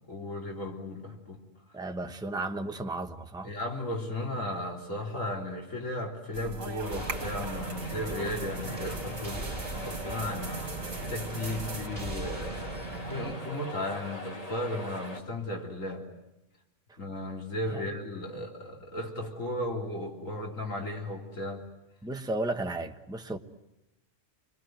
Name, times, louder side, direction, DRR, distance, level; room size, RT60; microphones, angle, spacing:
voice 1, 0.0-1.4 3.4-12.6 13.1-16.1 17.0-21.6 23.3-23.4, left 1 dB, 85° left, 4.0 m, -35 dB
voice 2, 1.7-3.5 17.7-17.8 22.0-23.4, right 2 dB, 5° right, 1.0 m, -34 dB
sound 1, 6.3-11.9, right 4 dB, 85° right, 2.3 m, -42 dB
sound 2, 6.8-15.2, left 1 dB, 30° left, 2.7 m, -41 dB
sound 3, 6.9-13.4, right 3 dB, 35° right, 3.1 m, -39 dB
28.5 x 22.0 x 9.3 m
omnidirectional pair, 1.3 m